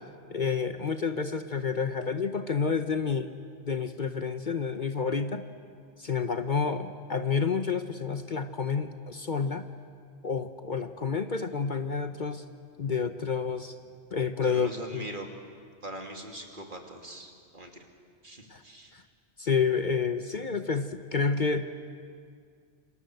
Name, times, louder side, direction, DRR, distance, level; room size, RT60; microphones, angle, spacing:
voice 1, 0.3-3.3 3.6-5.4 6.0-9.7 10.2-12.4 12.8-13.7 14.1-15.1 18.5-18.6 18.9-19.0 19.4-21.6, left 5 dB, 45° left, 9 dB, 1.0 m, -29 dB
voice 2, 14.4-15.3 15.8-17.7 18.2-18.9, right 1 dB, 45° right, 3 dB, 2.9 m, -41 dB
28.0 x 27.0 x 7.9 m, 2.2 s
omnidirectional pair, 1.2 m